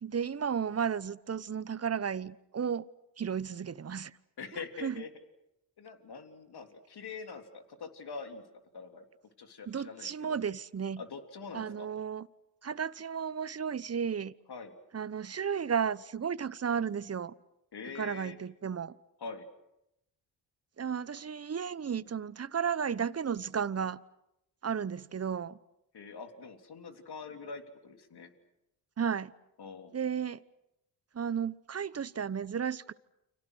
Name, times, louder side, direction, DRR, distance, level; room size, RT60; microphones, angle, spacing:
voice 1, 0.0-2.9 3.2-4.1 4.5-5.0 9.7-11.0 11.5-12.3 12.6-14.3 14.9-17.3 17.9-19.0 20.8-24.0 24.6-25.6 29.0-29.3 29.9-30.4 31.1-32.9, right 7 dB, 30° right, 1.0 m, -33 dB
voice 2, 4.4-5.1 5.8-8.4 8.7-9.0 9.4-10.4 11.0-11.9 14.5-14.7 17.7-18.4 19.2-19.5 25.9-28.3 29.6-29.9, left 5 dB, 50° left, 3.5 m, -44 dB
30.0 x 26.0 x 6.4 m
hypercardioid pair, 45°, 49 cm